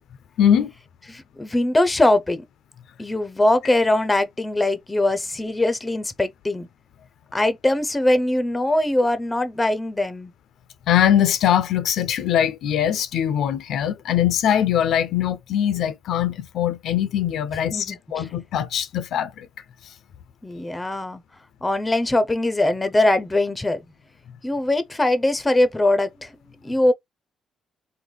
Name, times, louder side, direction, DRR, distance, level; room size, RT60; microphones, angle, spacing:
voice 1, 0.4-0.7 10.9-19.5, left 10 dB, 75° left, 0.5 m, -21 dB
voice 2, 1.1-2.4 3.0-6.7 7.3-10.3 17.7-18.3 20.4-21.2 21.6-23.8 24.4-26.3 26.6-26.9, left 1 dB, 15° left, 0.5 m, -21 dB
3.8 x 2.2 x 3.2 m
cardioid pair, 90°, 0 cm